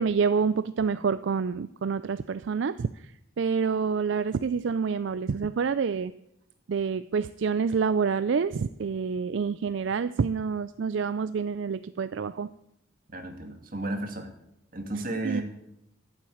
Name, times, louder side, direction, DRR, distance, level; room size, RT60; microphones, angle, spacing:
voice 1, 0.0-6.1 6.7-12.5 15.2-15.4, right 5 dB, 65° right, 14 dB, 0.4 m, -27 dB
voice 2, 13.1-14.3 14.7-15.4, right 2 dB, 45° right, 5 dB, 2.0 m, -33 dB
13.5 x 7.3 x 9.2 m, 0.79 s
head